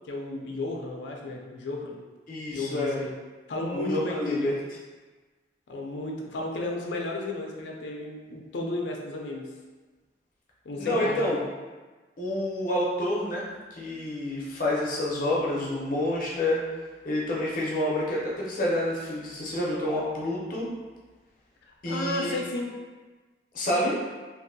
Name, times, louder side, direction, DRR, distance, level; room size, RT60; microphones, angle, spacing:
voice 1, 0.1-2.0 2.5-3.1 3.5-4.5 5.7-9.5 10.6-11.5 21.9-22.7, left 2 dB, 85° left, 0 dB, 0.5 m, -33 dB
voice 2, 2.3-3.0 3.7-4.5 10.8-11.4 12.2-16.6 17.0-20.7 21.8-22.4 23.5-24.0, left 1 dB, 50° left, -5 dB, 0.7 m, -28 dB
2.7 x 2.6 x 2.7 m, 1.3 s
head